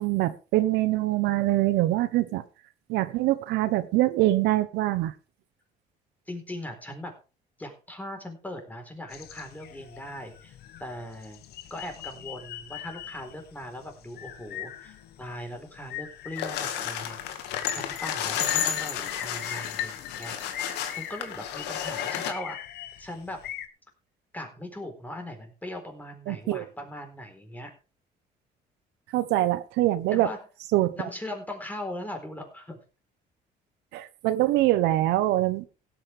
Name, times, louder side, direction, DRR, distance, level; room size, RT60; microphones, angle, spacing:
voice 1, 0.0-2.4 2.9-5.1 26.3-26.7 29.1-30.3 30.7-31.1 33.9-35.7, right 15 dB, 90° right, 13 dB, 1.0 m, -24 dB
voice 2, 6.3-7.1 7.6-11.4 11.7-17.2 17.7-22.6 23.0-23.4 24.3-27.7 30.1-30.4 31.0-32.8, left 1 dB, 10° left, 4 dB, 4.1 m, -39 dB
sound 1, 9.1-23.7, left 11 dB, 70° left, 1.3 m, -42 dB
sound 2, 16.4-22.3, left 9 dB, 85° left, 2.0 m, -31 dB
17.5 x 8.9 x 3.5 m, 0.32 s
cardioid pair, 110°, 17 cm